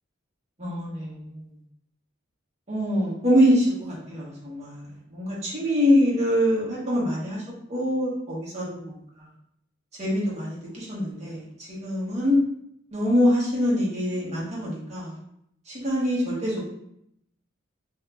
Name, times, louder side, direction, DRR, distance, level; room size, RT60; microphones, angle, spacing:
voice 1, 0.6-1.4 2.7-4.8 5.1-7.4 7.7-8.9 10.0-11.4 11.8-12.4 12.9-15.1 15.7-16.6, equal, 30° right, -7 dB, 1.1 m, -24 dB
2.7 x 2.3 x 3.3 m, 0.74 s
head